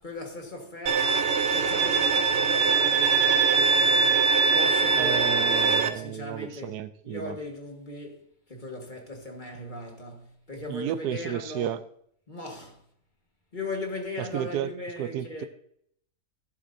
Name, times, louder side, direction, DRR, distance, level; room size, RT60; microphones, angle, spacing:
voice 1, 0.0-5.3 5.9-6.8 7.0-11.8 12.3-12.8 13.5-15.5, left 2 dB, 30° left, 1.6 m, -39 dB
Bowed string instrument, 0.9-5.9, right 5 dB, 55° right, 0.9 m, -22 dB
voice 2, 4.9-7.4 10.7-11.8 14.2-14.7 15.0-15.4, right 10 dB, 90° right, 1.2 m, -32 dB
14.5 x 7.8 x 2.7 m
omnidirectional pair, 1.6 m